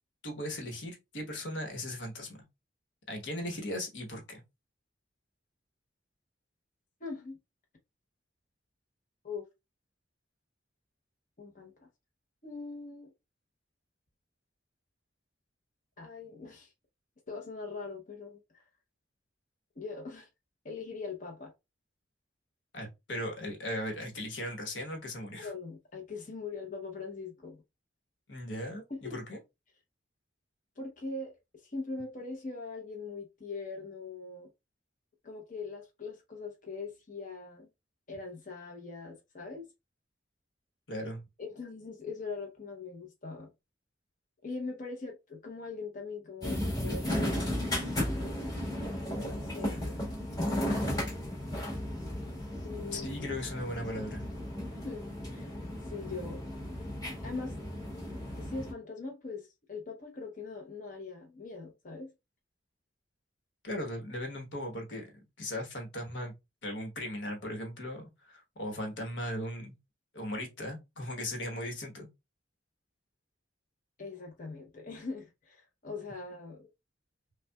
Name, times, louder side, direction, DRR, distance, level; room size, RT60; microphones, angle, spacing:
voice 1, 0.2-2.4 3.1-4.4 22.7-25.5 28.3-29.4 40.9-41.2 52.9-54.2 63.6-66.3 66.6-69.8 70.1-72.1, left 1 dB, 75° left, 1.2 m, -38 dB
voice 2, 7.0-7.4 9.2-9.4 11.4-11.9 12.4-13.1 16.0-16.7 17.3-18.7 19.8-20.3 20.6-21.5 25.4-27.6 28.9-29.2 30.8-34.5 35.2-37.7 38.1-39.7 41.4-43.5 44.4-47.1 49.1-50.0 52.6-53.3 54.7-55.6 55.8-56.4 57.2-57.6 58.4-62.1 74.0-76.6, left 4 dB, 45° left, 0.9 m, -41 dB
Nuernberg U-bahn, 46.4-58.7, left 1 dB, 25° left, 1.7 m, -35 dB
5.6 x 2.3 x 2.3 m
head